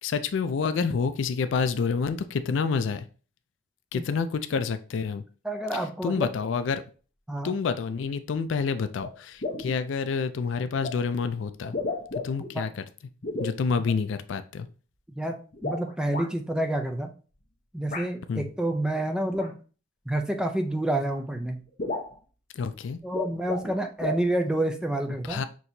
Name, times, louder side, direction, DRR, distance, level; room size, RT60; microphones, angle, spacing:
voice 1, 0.0-3.1 3.9-5.2 5.7-6.8 7.4-11.7 12.2-12.8 13.4-14.7 18.3-18.5 22.6-23.0 25.3-25.4, left 5 dB, 65° left, 0.4 m, -28 dB
voice 2, 5.4-6.3 7.3-7.6 12.5-12.7 15.1-15.4 15.6-17.1 17.7-19.6 20.1-21.6 23.0-25.4, right 1 dB, 5° right, 0.4 m, -28 dB
sound 1, 9.0-9.1 9.4-9.8 10.8-10.9 11.6-12.5 13.2-13.6 15.5-16.3 17.9-18.1 19.3-19.5 20.7-20.8 21.1-21.2 21.5-21.6 21.8-22.2 23.0-23.7 24.0-24.3, left 3 dB, 40° left, 0.8 m, -33 dB
6.0 x 2.8 x 2.7 m
head